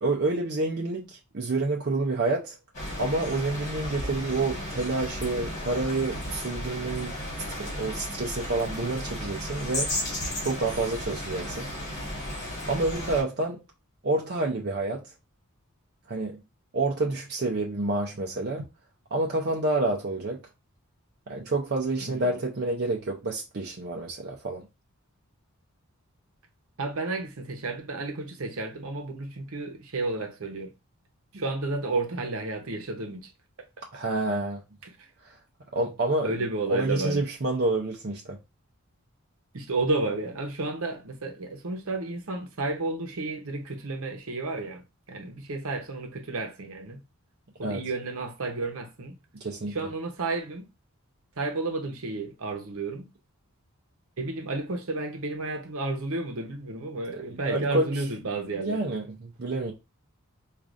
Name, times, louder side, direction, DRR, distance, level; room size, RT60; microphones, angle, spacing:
voice 1, 0.0-2.6 3.0-7.2 7.5-9.9 10.4-11.7 12.7-13.6 14.0-15.0 16.1-16.4 16.7-18.6 19.1-20.4 21.3-24.7 31.3-31.4 33.9-34.6 35.2-35.4 35.7-36.3 36.7-38.4 47.6-47.8 49.4-49.7 57.1-57.9 58.7-59.7, right 2 dB, 45° right, 0.5 m, -28 dB
sound 1, 2.7-13.2, left 1 dB, 35° left, 1.5 m, -34 dB
voice 2, 26.8-30.7 31.3-33.3 34.8-35.1 36.2-37.2 39.5-47.0 47.6-49.2 49.6-50.7 51.4-53.1 54.2-58.8, right 3 dB, 70° right, 0.8 m, -32 dB
4.7 x 2.5 x 2.5 m
head